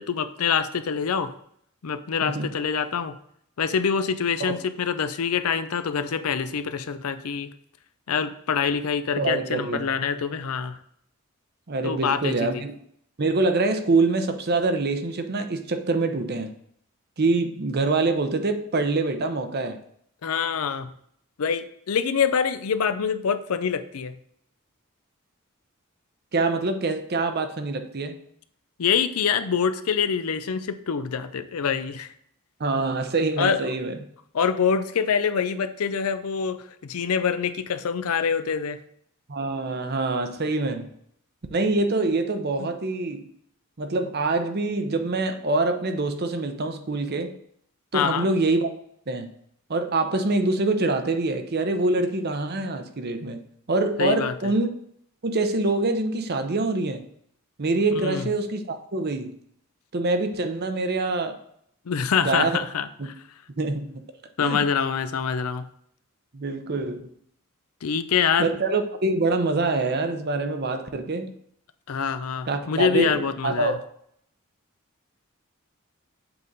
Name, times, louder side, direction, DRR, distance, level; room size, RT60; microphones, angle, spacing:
voice 1, 0.0-1.3 1.8-3.1 3.6-7.5 8.1-10.8 11.8-12.6 20.2-20.9 21.4-24.1 28.8-32.1 33.4-33.6 34.3-38.8 42.6-42.7 47.9-48.3 54.0-54.5 58.0-58.3 61.9-63.1 64.4-65.7 67.8-68.5 71.9-73.8, left 6 dB, 90° left, 11 dB, 0.5 m, -25 dB
voice 2, 9.2-9.8 11.7-12.7 13.2-16.5 17.2-19.8 26.3-28.2 32.6-34.0 39.3-40.9 41.5-43.3 43.8-47.3 47.9-48.7 49.1-49.3 49.7-53.4 53.7-54.7 55.2-57.1 57.6-59.3 59.9-61.4 62.2-62.6 63.0-63.1 63.6-63.9 64.4-64.6 66.3-67.1 68.4-71.3 72.5-73.8, right 3 dB, 50° right, 7 dB, 0.7 m, -25 dB
7.8 x 3.6 x 4.0 m, 0.69 s
head